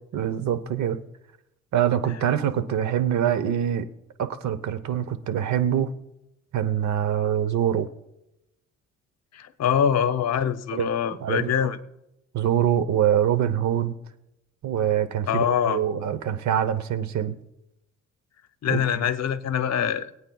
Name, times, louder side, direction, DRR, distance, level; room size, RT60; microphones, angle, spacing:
voice 1, 0.1-1.0 1.7-3.9 4.2-5.9 6.5-7.9 10.7-10.9 11.2-11.7 12.3-13.9 14.6-17.4 18.7-19.0, right 10 dB, 70° right, 12 dB, 1.0 m, -24 dB
voice 2, 9.3-11.8 15.3-15.8 18.6-20.1, left 8 dB, 60° left, 11 dB, 0.9 m, -24 dB
23.0 x 8.7 x 2.4 m, 0.88 s
cardioid pair, 90°, 30 cm